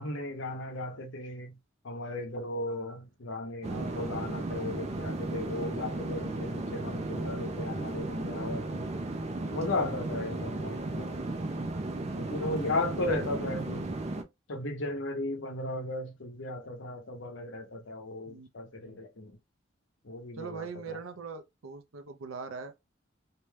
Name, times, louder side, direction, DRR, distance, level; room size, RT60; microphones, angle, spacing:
voice 1, 0.0-1.6 1.8-8.9 9.5-11.1 12.1-13.9 14.5-19.3 20.0-21.0, left 2 dB, 65° left, 0.8 m, -36 dB
sound 1, 3.6-14.2, right 2 dB, 35° right, 0.4 m, -35 dB
voice 2, 3.6-4.2 18.3-18.5 18.8-19.0 20.3-22.7, right 5 dB, 85° right, 0.6 m, -42 dB
2.7 x 2.3 x 3.2 m
head